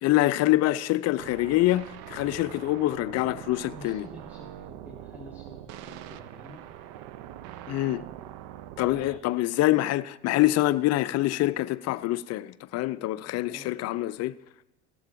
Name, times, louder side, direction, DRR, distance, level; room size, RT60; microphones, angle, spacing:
voice 1, 0.0-4.1 7.7-8.0 8.8-14.3, left 16 dB, 45° left, 0.5 m, -25 dB
sound 1, 1.2-9.2, right 12 dB, 65° right, 0.6 m, -43 dB
voice 2, 3.7-6.7 8.8-9.2 13.4-13.8, left 1 dB, 5° right, 1.6 m, -49 dB
16.0 x 7.2 x 3.8 m
supercardioid pair, 85°, 35 cm